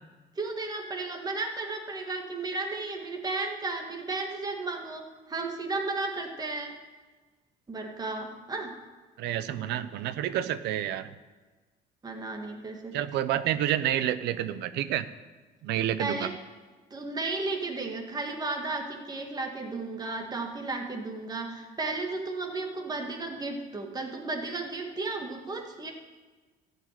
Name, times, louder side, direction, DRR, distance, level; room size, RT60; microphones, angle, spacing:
voice 1, 0.4-6.7 7.7-8.7 12.0-12.9 16.0-16.3 16.9-25.9, right 3 dB, 25° right, 2 dB, 1.8 m, -34 dB
voice 2, 9.2-11.1 12.9-15.1 15.6-16.3, right 11 dB, 85° right, 13 dB, 0.7 m, -29 dB
13.5 x 5.5 x 9.3 m, 1.3 s
cardioid pair, 110°, 17 cm